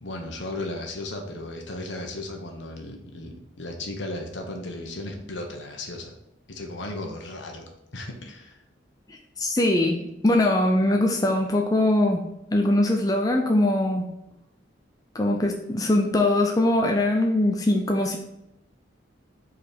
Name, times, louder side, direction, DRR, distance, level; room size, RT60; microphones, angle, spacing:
voice 1, 0.0-6.1 6.5-8.6, left 2 dB, 70° left, 2 dB, 1.1 m, -35 dB
voice 2, 9.1-12.2 12.5-14.1 15.1-18.2, left 1 dB, 20° left, 2 dB, 0.5 m, -22 dB
5.2 x 4.1 x 5.0 m, 0.85 s
head